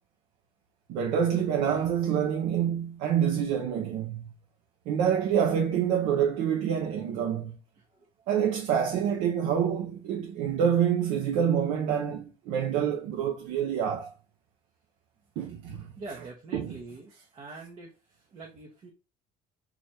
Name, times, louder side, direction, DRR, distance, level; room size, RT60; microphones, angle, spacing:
voice 1, 0.9-4.2 4.9-7.6 8.3-14.1 15.4-15.9 16.5-16.7, right 8 dB, 60° right, 0.6 m, -27 dB
voice 2, 7.7-8.3 15.9-18.9, right 3 dB, 35° right, 0.8 m, -45 dB
3.2 x 2.4 x 4.1 m
cardioid pair, 180°, 14 cm